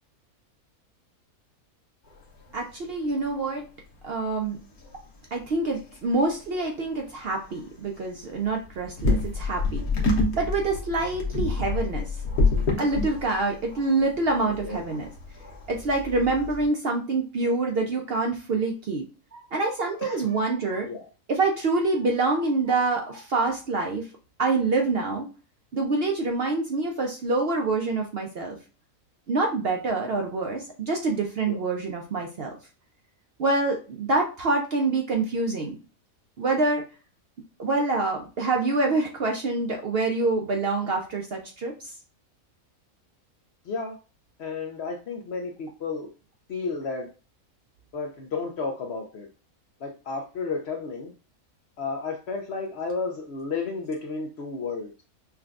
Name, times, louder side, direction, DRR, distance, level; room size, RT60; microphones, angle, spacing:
sound 1, 2.1-2.5 2.8-2.9 3.0-3.4 4.0-4.1 4.8-4.9 5.4-5.5 5.7-6.1 6.5-6.7 7.0-7.1 7.4-7.6 8.3-16.7, left 3 dB, 85° left, 1.4 m, -28 dB
voice 1, 2.5-3.6 4.0-4.6 5.3-9.8 10.3-12.1 12.8-15.1 15.7-19.1 19.3-20.9 21.3-24.1 24.4-25.3 25.7-28.6 29.3-32.5 33.4-35.8 36.4-36.8 37.6-41.9, right 3 dB, 60° right, 0.6 m, -26 dB
voice 2, 43.7-44.0 44.4-46.1 46.5-47.1 47.9-49.3 49.8-51.1 51.8-54.9, left 4 dB, 60° left, 0.7 m, -32 dB
5.7 x 2.2 x 2.4 m
omnidirectional pair, 1.5 m